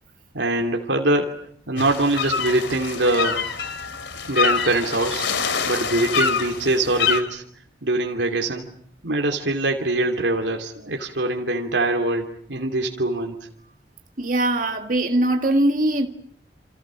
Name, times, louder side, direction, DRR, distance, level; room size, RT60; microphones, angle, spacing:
voice 1, 0.3-1.4 1.7-3.4 4.3-7.4 7.8-8.7 9.0-13.4, right 2 dB, 80° right, 2 dB, 2.9 m, -23 dB
sound 1, 1.8-7.2, left 6 dB, 85° left, 3.0 m, -25 dB
voice 2, 14.2-16.1, right 1 dB, 45° right, 4 dB, 1.9 m, -21 dB
28.5 x 28.5 x 6.4 m, 0.65 s
head